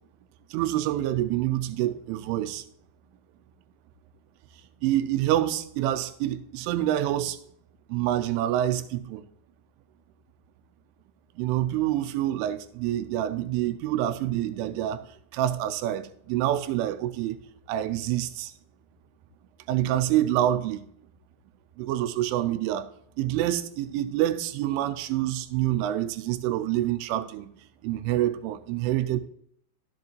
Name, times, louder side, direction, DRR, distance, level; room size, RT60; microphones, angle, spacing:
voice 1, 0.5-2.6 4.8-7.4 7.9-9.2 11.4-15.1 15.3-17.4 17.7-18.5 19.7-20.9 21.8-22.9 23.2-27.5 27.8-29.2, right 13 dB, 85° right, 3.2 m, -27 dB
13.5 x 7.5 x 3.0 m
omnidirectional pair, 5.6 m